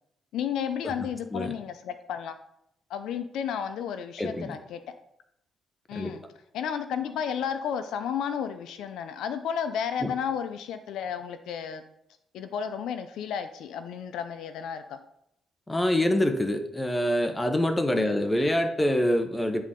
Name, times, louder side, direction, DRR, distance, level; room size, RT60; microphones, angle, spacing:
voice 1, 0.3-2.4 2.9-4.8 5.9-6.2 6.5-11.8 12.3-15.0 18.0-18.2, left 8 dB, 80° left, 9 dB, 0.5 m, -32 dB
voice 2, 4.2-4.6 5.9-6.1 10.0-10.1 15.7-19.6, left 1 dB, 15° left, 7 dB, 0.9 m, -26 dB
10.0 x 3.8 x 3.8 m, 0.78 s
cardioid pair, 90°, 0 cm